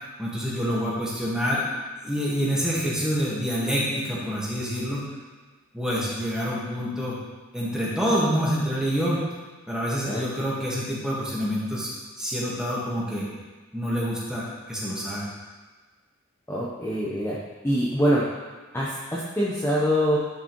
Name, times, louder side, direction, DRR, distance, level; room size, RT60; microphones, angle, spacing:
voice 1, 0.2-1.6 2.0-5.1 5.7-7.2 7.5-9.2 9.7-11.9 12.2-13.3 13.7-15.3, equal, 5° right, -6 dB, 1.6 m, -27 dB
voice 2, 16.5-17.4 17.6-18.2 18.7-20.2, equal, 10° left, -7 dB, 0.9 m, -24 dB
10.5 x 4.9 x 3.1 m, 1.3 s
head